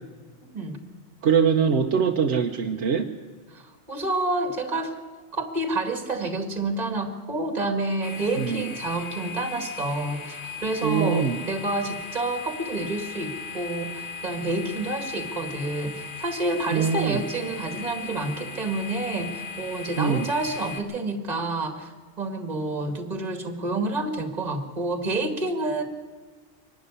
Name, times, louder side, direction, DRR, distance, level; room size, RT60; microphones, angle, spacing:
voice 1, 0.5-0.8 3.5-5.0 5.3-21.9 22.2-25.8, right 2 dB, 35° right, 7 dB, 2.0 m, -29 dB
voice 2, 1.2-3.1 8.4-8.7 10.8-11.4 16.7-17.2 20.0-20.3, right 6 dB, 80° right, 3 dB, 1.2 m, -23 dB
sound 1, 8.0-20.8, left 6 dB, 50° left, 1.8 m, -38 dB
24.0 x 12.0 x 9.9 m, 1.4 s
omnidirectional pair, 1.2 m